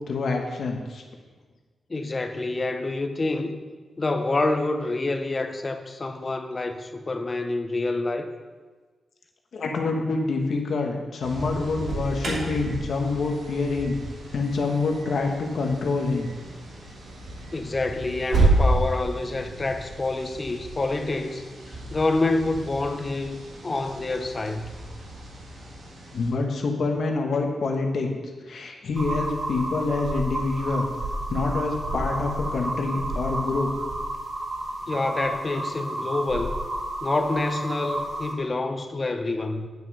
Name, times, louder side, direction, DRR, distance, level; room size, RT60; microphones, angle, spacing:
voice 1, 0.1-1.0 9.5-14.0 14.3-16.3 26.1-28.1 28.5-30.9 31.3-33.7, left 3 dB, 65° left, 2 dB, 1.2 m, -26 dB
voice 2, 1.9-3.6 4.0-8.3 17.5-24.7 34.9-36.6 37.0-39.7, left 2 dB, 30° left, 7 dB, 0.7 m, -27 dB
sound 1, 11.2-26.3, right 1 dB, 75° right, 2.2 m, -41 dB
Alarm, 11.5-18.6, right 3 dB, 55° right, 3.1 m, -29 dB
sound 2, 28.9-38.3, right 1 dB, 35° right, 1.5 m, -31 dB
9.1 x 6.1 x 5.4 m, 1.4 s
wide cardioid pair, 130°, 0 cm